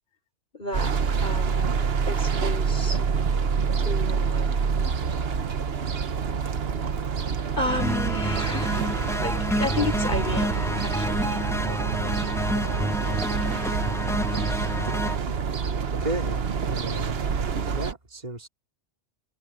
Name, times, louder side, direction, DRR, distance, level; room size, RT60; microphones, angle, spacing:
voice 1, 0.5-0.9 1.2-3.0 3.8-4.6 7.6-8.9 9.2-11.4, left 2 dB, 50° left, 5.6 m, -32 dB
sound 1, 0.7-17.9, right 6 dB, 65° right, 1.3 m, -27 dB
sound 2, 7.7-15.2, equal, 5° left, 0.7 m, -29 dB
voice 2, 16.0-17.2 17.8-18.5, right 1 dB, 40° right, 2.7 m, -33 dB
omnidirectional pair, 1.1 m